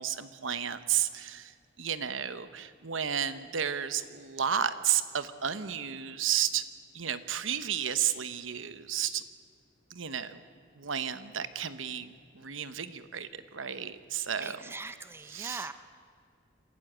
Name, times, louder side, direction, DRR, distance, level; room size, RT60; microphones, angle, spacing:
voice 1, 0.0-6.6 6.9-9.2 9.9-10.4 10.8-14.6 15.3-15.7, right 9 dB, 80° right, 13 dB, 1.0 m, -32 dB
voice 2, 14.4-15.7, right 3 dB, 10° right, 11 dB, 0.6 m, -41 dB
27.0 x 14.0 x 8.0 m, 2.3 s
head